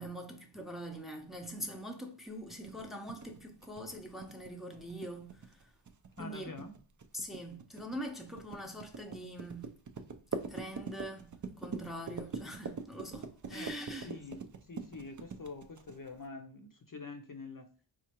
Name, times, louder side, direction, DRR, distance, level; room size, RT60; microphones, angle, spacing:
voice 1, 0.0-5.7 6.2-6.5 7.1-9.7 10.5-11.3 11.6-14.1, equal, ahead, 0.6 m, -43 dB
sound 1, 2.5-16.2, right 4 dB, 40° right, 0.4 m, -43 dB
voice 2, 6.2-6.7 13.5-17.7, left 3 dB, 45° left, 0.6 m, -46 dB
4.2 x 2.4 x 2.9 m
wide cardioid pair, 45°, 47 cm